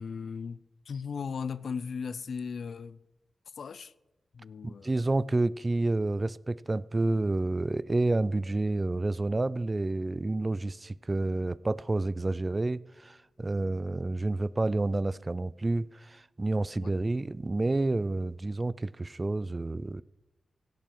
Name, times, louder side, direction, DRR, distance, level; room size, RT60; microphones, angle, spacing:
voice 1, 0.0-3.0 3.6-3.9 4.3-4.9 16.8-17.0, left 6 dB, 75° left, 0.5 m, -37 dB
voice 2, 4.6-20.0, right 2 dB, 30° right, 0.4 m, -29 dB
16.5 x 7.4 x 5.4 m
cardioid pair, 60°, 0 cm